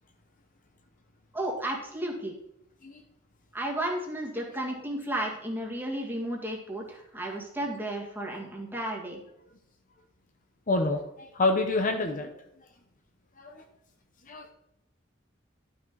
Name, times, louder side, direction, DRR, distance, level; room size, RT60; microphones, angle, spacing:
voice 1, 1.3-2.3 3.5-9.2, right 1 dB, 10° right, -1 dB, 2.0 m, -33 dB
voice 2, 10.7-12.3 13.4-13.6 14.3-14.5, left 2 dB, 40° left, 5 dB, 0.9 m, -27 dB
12.0 x 6.0 x 4.7 m, 0.80 s
head